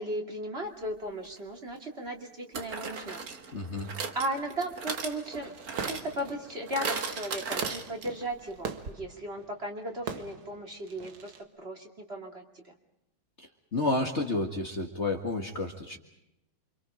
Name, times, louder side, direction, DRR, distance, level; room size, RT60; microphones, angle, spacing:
voice 1, 0.0-3.2 4.1-5.5 5.8-11.3 11.6-12.7, right 1 dB, 30° right, 2 dB, 2.8 m, -36 dB
sound 1, 1.3-1.4 2.5-8.3 8.6-8.7 8.9-9.0, right 4 dB, 45° right, 2.0 m, -37 dB
voice 2, 3.5-3.9 13.4-16.0, left 2 dB, 35° left, 3 dB, 2.0 m, -31 dB
Fireworks, 5.4-11.4, right 6 dB, 80° right, 2.4 m, -42 dB
29.0 x 26.0 x 5.0 m, 0.84 s
omnidirectional pair, 2.2 m